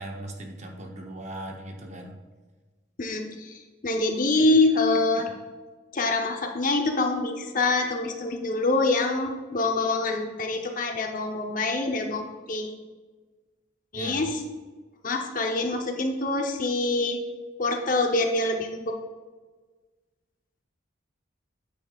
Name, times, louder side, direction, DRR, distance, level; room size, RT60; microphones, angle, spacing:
voice 1, 0.0-2.2 13.9-14.2, right 1 dB, 35° right, 2 dB, 0.9 m, -38 dB
voice 2, 3.0-5.3 5.9-12.7 13.9-14.3 15.0-17.2 17.6-18.9, left 2 dB, 40° left, 3 dB, 0.8 m, -25 dB
9.0 x 8.9 x 2.4 m, 1.3 s
head